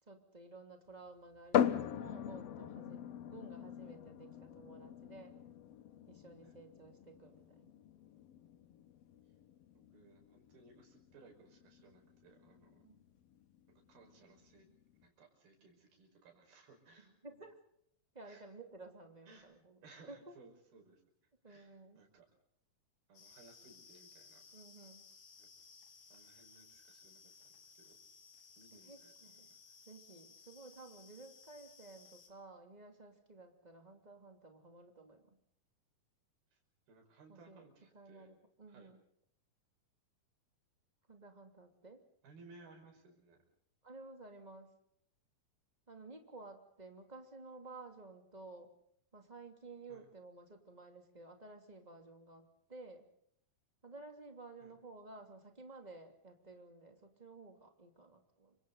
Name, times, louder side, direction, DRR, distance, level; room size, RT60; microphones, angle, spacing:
voice 1, 0.0-5.4 6.1-7.7 12.8-13.0 17.0-17.5 18.1-19.8 20.1-20.3 21.4-22.0 24.5-25.0 28.7-29.5 29.9-35.4 37.3-37.6 37.9-39.0 41.1-42.0 43.8-44.7 45.9-48.7 49.1-53.1 53.8-58.6, right 3 dB, 10° right, 4 dB, 2.3 m, -54 dB
sound 1, 1.5-15.0, left 9 dB, 80° left, 1.4 m, -41 dB
voice 2, 9.7-12.8 13.9-14.7 15.0-17.4 18.2-18.5 19.3-19.5 19.8-21.0 21.5-22.3 23.1-24.4 25.4-25.5 26.1-27.5 27.8-28.0 28.6-29.1 29.5-29.6 36.5-36.6 36.9-38.3 38.7-38.9 42.2-43.4 49.9-50.1 54.6-54.7, right 3 dB, 75° right, 3 dB, 7.3 m, -61 dB
sound 2, 23.1-32.3, left 5 dB, 60° left, 4.7 m, -60 dB
29.5 x 25.5 x 4.0 m, 0.68 s
omnidirectional pair, 4.4 m